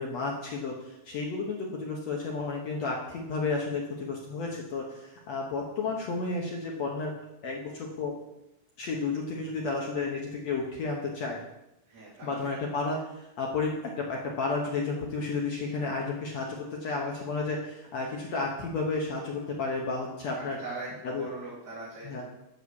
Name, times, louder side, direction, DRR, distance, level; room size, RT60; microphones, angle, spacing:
voice 1, 0.0-7.1 7.4-8.2 8.8-11.4 12.2-20.6 21.0-21.2 22.0-22.2, left 3 dB, 75° left, -1 dB, 1.5 m, -32 dB
voice 2, 11.9-12.5 20.4-22.2, right 2 dB, 30° right, -7 dB, 2.4 m, -41 dB
7.9 x 6.4 x 7.1 m, 0.89 s
omnidirectional pair, 4.8 m